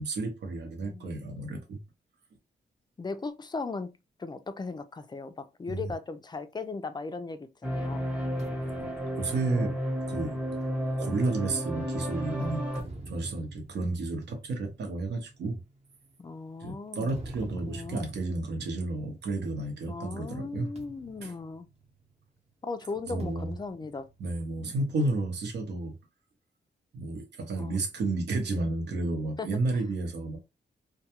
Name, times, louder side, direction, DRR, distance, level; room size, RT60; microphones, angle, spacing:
voice 1, 0.0-1.8 5.7-5.9 8.7-8.9 9.2-9.8 10.1-10.4 11.0-12.6 13.1-15.6 16.6-20.7 21.2-21.3 23.1-23.5 24.2-25.9 26.9-30.4, right 2 dB, 75° right, 0.8 m, -32 dB
voice 2, 0.8-1.1 3.0-3.9 4.2-8.1 16.2-17.2 17.6-18.1 19.9-21.7 22.6-24.1 27.6-27.7 28.0-28.1 29.4-29.6, left 4 dB, 25° left, 0.4 m, -37 dB
sound 1, 7.6-12.8, equal, 5° right, 0.8 m, -32 dB
sound 2, 8.4-12.0 12.5-19.9 20.2-20.4 20.8-22.4 23.2-24.9, right 2 dB, 35° right, 0.8 m, -47 dB
2.3 x 2.2 x 2.8 m
cardioid pair, 85°, 18 cm